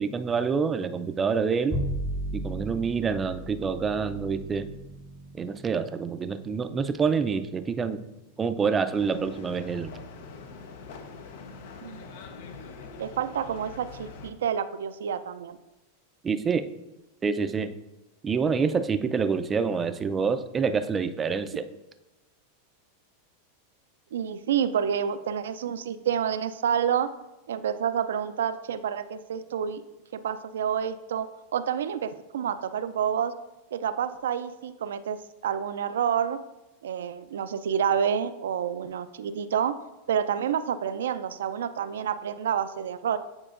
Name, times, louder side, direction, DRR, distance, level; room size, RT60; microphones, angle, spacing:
voice 1, 0.0-1.8 2.3-4.7 5.3-8.0 8.4-9.9 16.2-16.7 17.2-17.7 18.2-21.7, right 5 dB, 20° right, 10 dB, 0.4 m, -27 dB
Bowed string instrument, 1.7-8.2, right 1 dB, ahead, 0.8 m, -37 dB
sound 1, 8.9-14.3, left 4 dB, 70° left, 0.7 m, -43 dB
voice 2, 13.0-15.6 24.1-27.1 27.5-29.8 30.1-33.3 33.7-36.4 36.8-39.7 40.1-43.2, right 8 dB, 85° right, 12 dB, 0.4 m, -28 dB
8.8 x 4.4 x 2.5 m, 0.99 s
hypercardioid pair, 115°, 0 cm